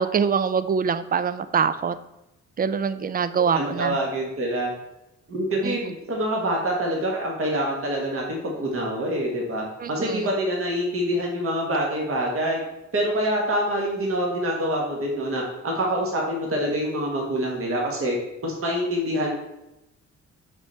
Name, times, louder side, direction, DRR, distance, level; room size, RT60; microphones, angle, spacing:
voice 1, 0.0-1.9 2.6-3.9 5.6-5.8 9.8-10.3, right 6 dB, 30° right, 14 dB, 0.4 m, -24 dB
voice 2, 3.5-4.7 5.3-12.6 12.9-18.2 18.4-19.3, equal, 45° right, -1 dB, 1.5 m, -26 dB
6.0 x 5.7 x 4.4 m, 0.91 s
cardioid pair, 120°, 30 cm